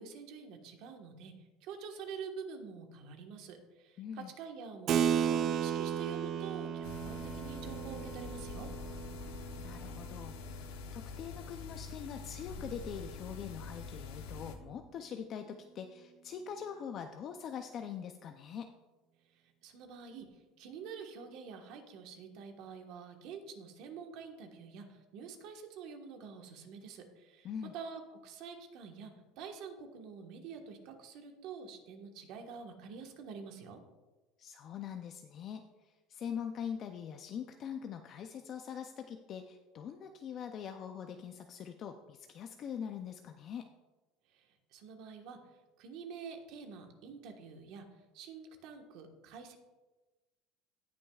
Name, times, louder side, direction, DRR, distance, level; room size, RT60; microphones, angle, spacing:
voice 1, 0.0-8.7 19.2-33.8 44.3-49.6, right 6 dB, 60° right, 4 dB, 1.3 m, -47 dB
voice 2, 4.0-4.3 9.6-18.7 27.4-27.7 34.4-43.7, left 8 dB, 40° left, 6 dB, 0.5 m, -43 dB
Keyboard (musical), 4.9-10.9, right 8 dB, 40° right, 0.4 m, -35 dB
sound 1, 6.8-14.6, left 5 dB, 90° left, 1.0 m, -45 dB
17.5 x 6.1 x 2.4 m, 1.2 s
cardioid pair, 145°, 0 cm